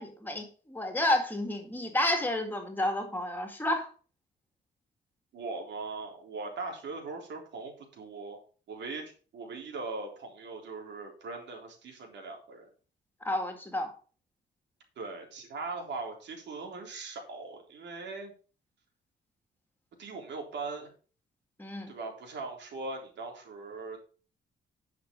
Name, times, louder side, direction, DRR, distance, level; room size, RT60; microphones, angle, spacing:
voice 1, 0.0-3.9 13.2-13.9 21.6-21.9, left 1 dB, 10° left, 5 dB, 2.3 m, -30 dB
voice 2, 5.3-8.4 8.7-12.7 15.0-18.3 20.0-20.9 21.9-24.0, right 3 dB, 75° right, 2 dB, 3.6 m, -40 dB
10.5 x 6.1 x 5.4 m, 0.39 s
wide cardioid pair, 155°, 18 cm